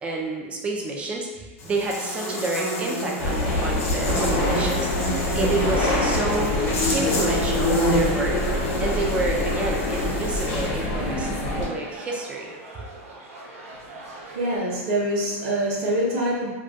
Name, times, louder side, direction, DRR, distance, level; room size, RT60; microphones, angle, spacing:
voice 1, 0.0-4.9 5.3-6.6 6.9-8.4 8.8-11.3 11.6-12.5, right 2 dB, 15° right, 0 dB, 0.3 m, -29 dB
Buzz, 1.6-10.7, left 1 dB, 75° left, 0.8 m, -29 dB
sound 1, 3.1-14.6, right 2 dB, 90° right, 0.5 m, -42 dB
sound 2, 3.2-11.7, left 1 dB, 50° left, 0.8 m, -25 dB
voice 2, 14.3-16.5, right 1 dB, 45° right, -4 dB, 0.7 m, -24 dB
2.3 x 2.2 x 2.6 m, 1.3 s
supercardioid pair, 145°, 8 cm